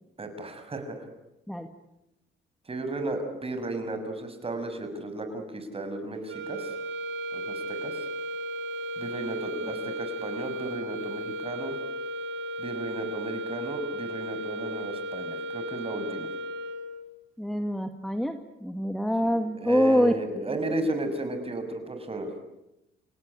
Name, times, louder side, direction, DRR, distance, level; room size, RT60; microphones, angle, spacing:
voice 1, 0.2-1.1 2.7-6.7 7.3-8.1 9.0-11.8 12.6-16.3 19.2-22.3, right 2 dB, 30° right, 7 dB, 6.6 m, -34 dB
sound 1, 6.2-17.1, equal, 80° right, 3.2 m, -35 dB
voice 2, 17.4-20.6, equal, ahead, 6 dB, 2.0 m, -26 dB
29.5 x 18.0 x 10.0 m, 0.91 s
cardioid pair, 90°, 20 cm